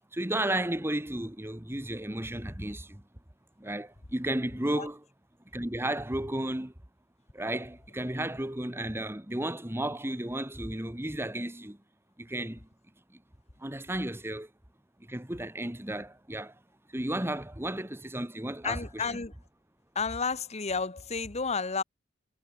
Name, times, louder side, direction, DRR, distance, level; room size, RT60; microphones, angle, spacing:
voice 1, 0.1-3.0 3.6-5.0 5.5-6.7 7.3-11.8 12.2-12.7 13.6-14.5 15.1-16.5 16.9-19.2, right 1 dB, 10° right, 1.7 m, -33 dB
voice 2, 18.6-19.3 19.9-21.8, left 5 dB, 35° left, 1.2 m, -31 dB
head